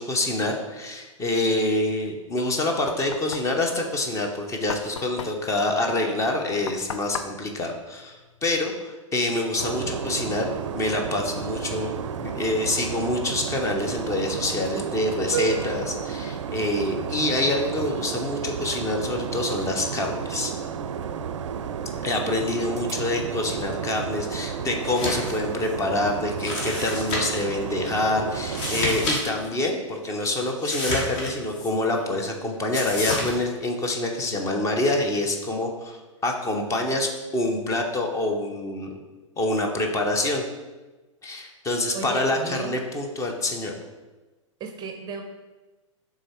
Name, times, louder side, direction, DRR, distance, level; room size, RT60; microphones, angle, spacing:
voice 1, 0.0-10.5 10.7-20.5 22.0-39.0 39.4-40.4 41.2-43.7, left 2 dB, 20° left, 3 dB, 0.8 m, -26 dB
Knock, 2.3-8.8, left 6 dB, 65° left, 0.5 m, -39 dB
sound 1, 9.6-29.1, right 7 dB, 65° right, 0.4 m, -32 dB
sound 2, 24.8-25.3 25.6-25.7 26.4-27.4 28.4-29.2 29.4-29.5 30.6-31.7 32.7-33.3, left 1 dB, 40° left, 1.6 m, -29 dB
voice 2, 41.9-42.7 44.6-45.2, right 4 dB, 25° right, 4 dB, 0.6 m, -34 dB
6.5 x 3.7 x 4.5 m, 1.2 s
figure-of-eight pair, 100°, 17 cm